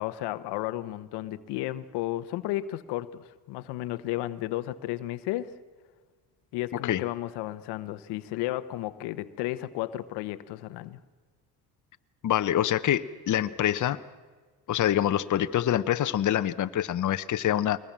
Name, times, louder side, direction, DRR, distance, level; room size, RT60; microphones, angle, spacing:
voice 1, 0.0-5.5 6.5-11.0, left 15 dB, 90° left, 13 dB, 1.0 m, -33 dB
voice 2, 12.2-14.0 14.7-17.8, left 11 dB, 50° left, 11 dB, 0.9 m, -25 dB
22.5 x 20.0 x 7.4 m, 1.4 s
cardioid pair, 95°, 39 cm